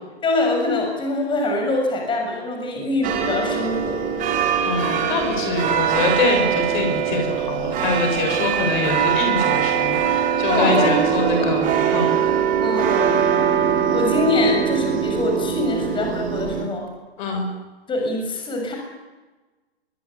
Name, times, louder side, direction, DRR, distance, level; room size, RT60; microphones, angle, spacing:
voice 1, 0.2-4.0 10.5-11.5 12.6-13.0 13.9-16.9 17.9-18.8, left 2 dB, 15° left, 2 dB, 7.1 m, -23 dB
sound 1, 3.0-16.6, right 8 dB, 25° right, 4.6 m, -22 dB
voice 2, 4.6-12.2 17.2-17.5, left 3 dB, 45° left, 5 dB, 7.1 m, -24 dB
25.0 x 22.5 x 8.7 m, 1.2 s
hypercardioid pair, 130°, 33 cm